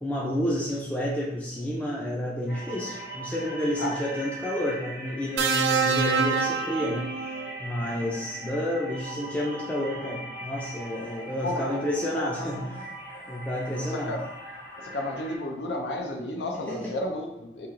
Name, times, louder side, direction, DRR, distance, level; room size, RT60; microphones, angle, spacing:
voice 1, 0.0-12.9 13.3-14.2 16.7-16.8, equal, 10° left, -4 dB, 0.3 m, -30 dB
sound 1, 2.5-15.4, right 1 dB, 55° left, 1.0 m, -40 dB
sound 2, 5.4-7.6 8.9-9.2, right 5 dB, 80° right, 0.3 m, -26 dB
voice 2, 7.8-8.2 11.4-12.7 13.8-14.3 14.8-17.7, left 1 dB, 80° left, 1 dB, 0.5 m, -33 dB
3.0 x 2.8 x 3.6 m, 0.89 s
head